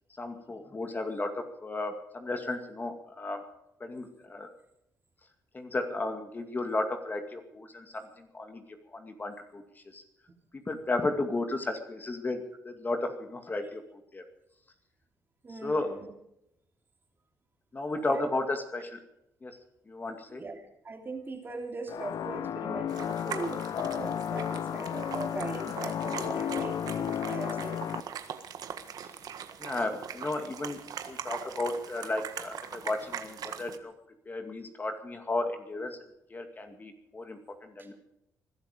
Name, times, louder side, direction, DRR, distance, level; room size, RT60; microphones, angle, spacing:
voice 1, 0.2-3.4 3.8-4.5 5.5-8.6 8.9-10.0 10.7-14.2 15.5-16.0 17.7-19.0 19.4-19.6 19.9-20.4 29.6-33.9 34.3-36.0 36.3-37.9, left 2 dB, 25° left, 5 dB, 2.2 m, -34 dB
voice 2, 15.4-16.1 18.0-18.3 20.3-27.9 29.0-29.2 37.8-37.9, right 3 dB, 30° right, 4 dB, 3.1 m, -40 dB
sound 1, 21.9-28.0, left 9 dB, 60° left, 0.6 m, -33 dB
sound 2, 22.9-33.8, right 8 dB, 65° right, 1.6 m, -41 dB
21.5 x 12.0 x 5.2 m, 0.80 s
cardioid pair, 100°, 7 cm